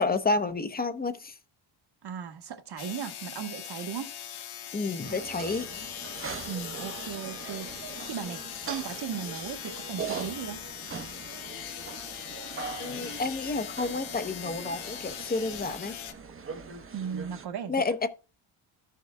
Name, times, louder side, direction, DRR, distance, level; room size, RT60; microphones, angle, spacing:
voice 1, 0.0-1.3 4.7-5.7 12.8-15.9 17.7-18.1, left 3 dB, 20° left, 0.8 m, -30 dB
voice 2, 2.0-4.1 6.5-10.6 16.9-17.9, right 8 dB, 55° right, 1.3 m, -37 dB
sound 1, 2.8-16.1, left 10 dB, 80° left, 1.1 m, -41 dB
sound 2, 5.0-17.5, right 5 dB, 25° right, 0.9 m, -41 dB
14.5 x 6.6 x 2.2 m
cardioid pair, 140°, 47 cm